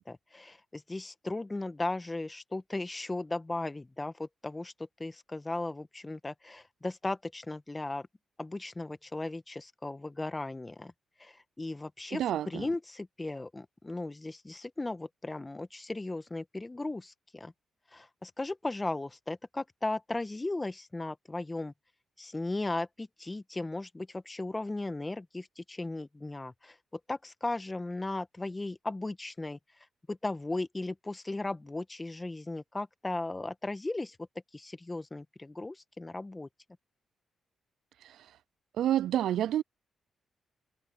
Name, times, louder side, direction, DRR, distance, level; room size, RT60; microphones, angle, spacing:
voice 1, 0.0-4.7 5.0-8.1 8.4-10.9 11.2-17.5 17.9-21.7 22.2-26.7 27.1-29.6 30.1-34.2 34.5-36.5, left 2 dB, 20° left, 1.4 m, -36 dB
voice 2, 12.1-12.7 38.0-38.2 38.8-39.6, right 11 dB, 80° right, 0.3 m, -28 dB
supercardioid pair, 55°, 0 cm